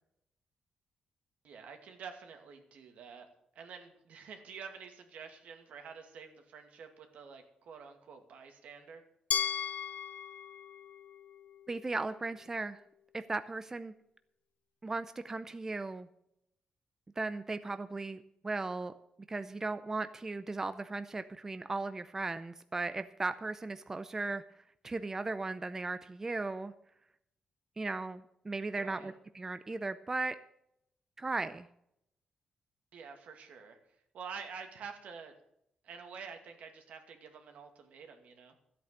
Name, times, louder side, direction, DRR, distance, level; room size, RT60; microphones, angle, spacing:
voice 1, 1.4-3.3 3.6-9.0 28.8-29.1 32.9-33.8 34.1-35.3 35.8-38.5, right 6 dB, 75° right, 5 dB, 2.3 m, -48 dB
Glass, 9.3-12.2, left 8 dB, 65° left, 0.7 m, -37 dB
voice 2, 11.7-12.8 13.1-13.9 14.8-16.1 17.2-18.9 19.3-24.4 24.8-26.7 27.8-30.4 31.2-31.7, right 3 dB, 20° right, 11 dB, 0.5 m, -37 dB
13.5 x 8.7 x 6.7 m, 0.76 s
cardioid pair, 135°, 2 cm